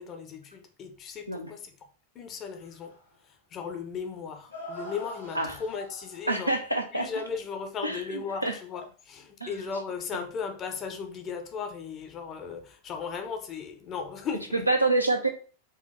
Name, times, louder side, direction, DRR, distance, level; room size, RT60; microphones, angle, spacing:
voice 1, 0.0-1.7 2.1-2.9 3.3-6.5 6.9-14.7, left 6 dB, 30° left, 0.7 m, -36 dB
sound 1, 2.6-3.1 3.7-3.8 4.5-6.6 8.7-8.9, left 1 dB, 75° left, 1.8 m, -44 dB
voice 2, 6.3-7.1 7.8-8.5 9.4-9.5 14.5-15.3, right 2 dB, 90° right, 0.6 m, -27 dB
4.4 x 2.3 x 3.2 m
figure-of-eight pair, 90°, 0 cm